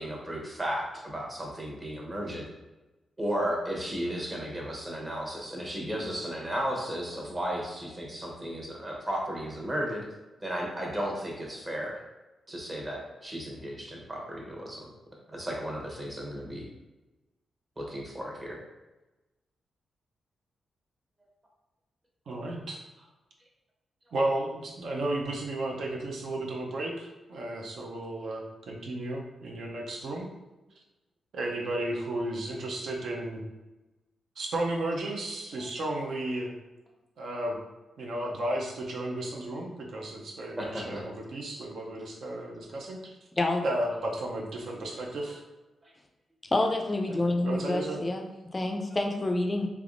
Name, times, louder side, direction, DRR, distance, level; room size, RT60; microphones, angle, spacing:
voice 1, 0.0-2.4 3.2-10.0 10.4-12.0 12.5-14.8 15.3-16.7 17.8-18.6 40.6-41.0 45.8-45.9, equal, 25° right, -2 dB, 0.9 m, -34 dB
voice 2, 22.3-22.8 24.1-30.3 31.3-33.4 34.4-36.5 37.2-37.6 38.0-43.1 43.6-45.4 47.1-48.0, right 1 dB, 70° right, 0 dB, 0.5 m, -33 dB
voice 3, 46.5-48.2 48.5-49.7, left 2 dB, 25° left, 2 dB, 0.3 m, -27 dB
3.4 x 3.0 x 2.5 m, 1.1 s
cardioid pair, 110°, 0 cm